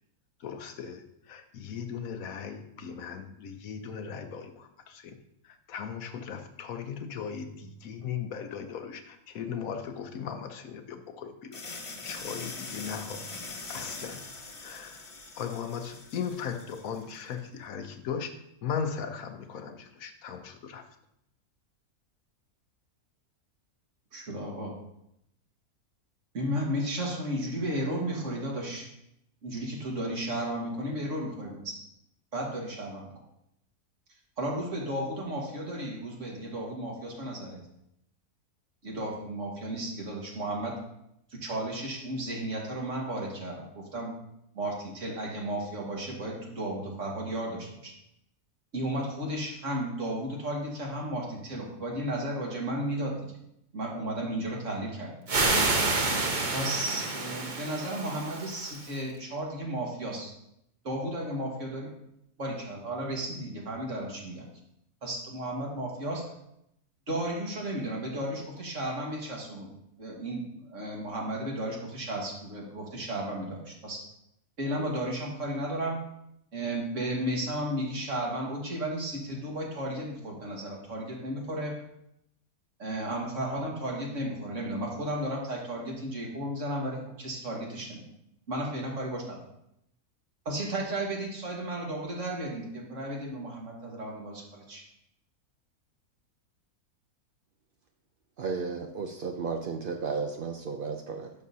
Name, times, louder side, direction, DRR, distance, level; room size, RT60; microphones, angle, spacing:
voice 1, 0.4-5.2 5.4-11.6 12.0-13.3 13.7-14.2 14.6-15.1 15.4-18.3 18.6-20.9, left 7 dB, 70° left, 7 dB, 1.1 m, -37 dB
sound 1, 11.5-17.2, left 3 dB, 40° left, 0.5 m, -42 dB
voice 2, 24.1-24.7 26.3-28.9 29.4-31.7 32.3-33.0 34.4-37.6 38.8-40.8 41.3-44.2 44.6-47.9 48.7-53.2 53.7-55.1 56.5-60.3 60.8-61.9 62.4-64.5 65.0-66.3 67.1-69.7 70.0-74.0 74.6-76.0 76.5-81.8 82.8-88.0 88.5-89.4 90.5-94.8, right 1 dB, 55° right, -1 dB, 1.9 m, -34 dB
sound 2, 55.3-58.9, right 3 dB, 40° right, 0.9 m, -28 dB
voice 3, 98.4-101.3, right 5 dB, 75° right, 4 dB, 0.5 m, -33 dB
11.0 x 6.3 x 2.7 m, 0.78 s
omnidirectional pair, 1.6 m